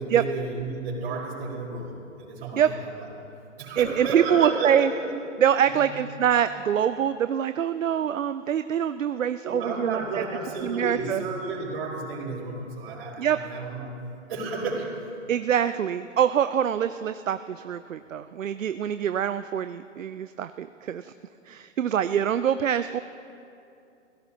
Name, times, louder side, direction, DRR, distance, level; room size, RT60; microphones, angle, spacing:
voice 1, 0.0-3.1 3.6-5.1 5.7-5.8 9.4-14.0 14.3-14.9, right 3 dB, 50° right, -5 dB, 5.0 m, -32 dB
voice 2, 3.8-4.9 5.4-10.2 10.6-11.2 13.2-13.4 15.3-21.1 21.5-23.0, right 9 dB, 90° right, 12 dB, 0.5 m, -25 dB
28.0 x 16.5 x 2.9 m, 2.7 s
hypercardioid pair, 135°, 38 cm